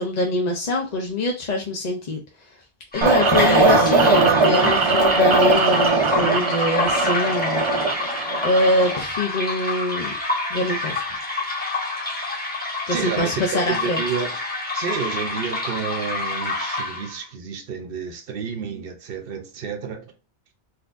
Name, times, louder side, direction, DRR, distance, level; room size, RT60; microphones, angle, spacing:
voice 1, 0.0-2.2 2.9-7.9 8.4-10.1 10.5-11.0 12.9-14.0, left 1 dB, 45° left, 0.7 m, -24 dB
sound 1, 2.9-17.2, left 3 dB, 10° left, 1.0 m, -28 dB
sound 2, 3.0-9.0, right 3 dB, 45° right, 0.4 m, -19 dB
voice 2, 12.9-14.3 14.7-20.1, right 6 dB, 65° right, 0.9 m, -30 dB
4.0 x 2.8 x 2.5 m
omnidirectional pair, 1.0 m